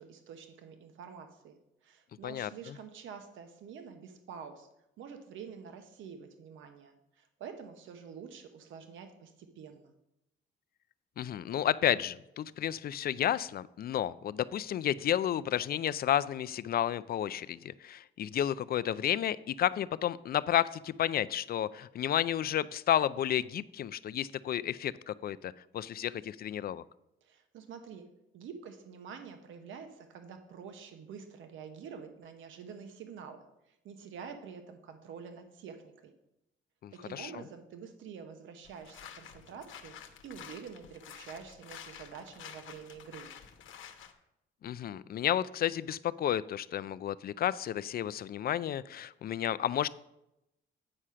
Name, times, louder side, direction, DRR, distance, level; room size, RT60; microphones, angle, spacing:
voice 1, 0.0-1.6 1.8-4.7 5.0-9.9 27.2-28.1 28.3-36.1 36.9-40.0 40.2-43.3, right 6 dB, 80° right, 7 dB, 1.0 m, -47 dB
voice 2, 2.2-2.7 11.2-26.8 36.8-37.3 44.6-49.9, left 10 dB, 50° left, 17 dB, 0.4 m, -31 dB
sound 1, 38.6-44.1, left 8 dB, 80° left, 1.0 m, -50 dB
8.7 x 4.8 x 5.7 m, 0.87 s
cardioid pair, 90°, 20 cm